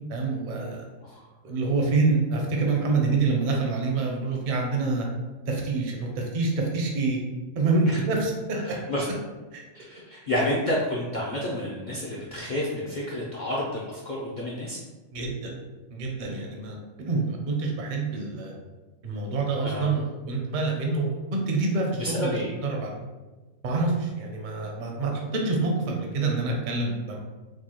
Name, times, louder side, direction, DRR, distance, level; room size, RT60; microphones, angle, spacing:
voice 1, 0.1-0.9 1.4-5.1 5.5-7.2 7.5-8.8 9.5-9.6 15.1-15.5 15.9-16.8 17.0-18.5 19.0-22.4 22.6-22.9 23.6-27.2, right 3 dB, 50° right, 0 dB, 0.6 m, -26 dB
voice 2, 8.6-9.1 9.7-14.8 19.6-19.9 22.0-22.5, left 1 dB, 65° left, -5 dB, 0.4 m, -30 dB
4.7 x 2.2 x 2.9 m, 1.2 s
omnidirectional pair, 1.5 m